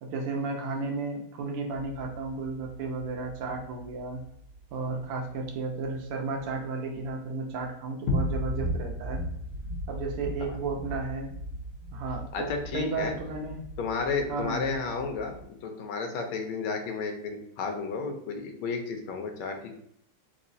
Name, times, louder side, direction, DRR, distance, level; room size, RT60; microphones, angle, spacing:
voice 1, 0.0-4.2 4.7-9.2 9.9-11.3 11.9-13.6 14.3-14.6, right 3 dB, 85° right, 2 dB, 1.7 m, -33 dB
sound 1, 2.0-7.1 7.5-7.7 8.0-15.4, left 1 dB, 65° left, 0.8 m, -37 dB
voice 2, 12.3-13.1 13.8-19.8, left 4 dB, 80° left, 4 dB, 1.5 m, -32 dB
4.0 x 3.0 x 2.6 m, 0.74 s
omnidirectional pair, 2.4 m